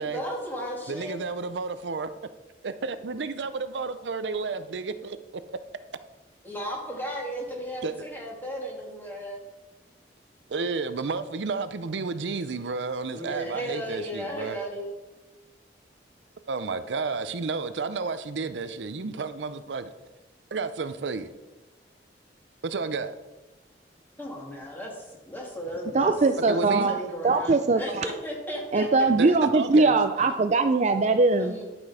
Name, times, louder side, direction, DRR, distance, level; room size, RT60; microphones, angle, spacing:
voice 1, 0.0-1.2 6.4-9.4 13.1-14.9 24.2-26.1 26.5-29.3 31.4-31.6, equal, 10° left, 2.4 m, -35 dB
voice 2, 0.9-2.1 2.6-5.2 5.5-5.6 7.8-7.9 10.5-14.6 16.5-19.9 20.5-21.3 22.6-23.1 26.5-27.0 29.2-29.9, right 4 dB, 90° right, 0.6 m, -31 dB
voice 3, 25.9-27.0 27.2-28.0 28.7-31.6, right 3 dB, 40° right, 0.4 m, -21 dB
11.5 x 6.1 x 4.8 m
head